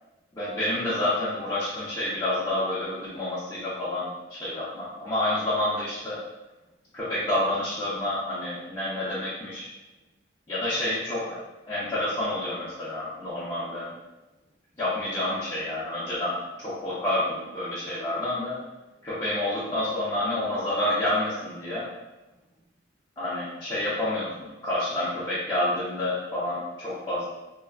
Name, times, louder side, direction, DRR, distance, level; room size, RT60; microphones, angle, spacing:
voice 1, 0.3-6.2 6.9-9.7 10.5-11.4 11.7-13.9 14.8-18.6 19.0-21.9 23.2-27.2, left 1 dB, 20° left, -11 dB, 0.5 m, -29 dB
2.5 x 2.3 x 2.3 m, 1.0 s
head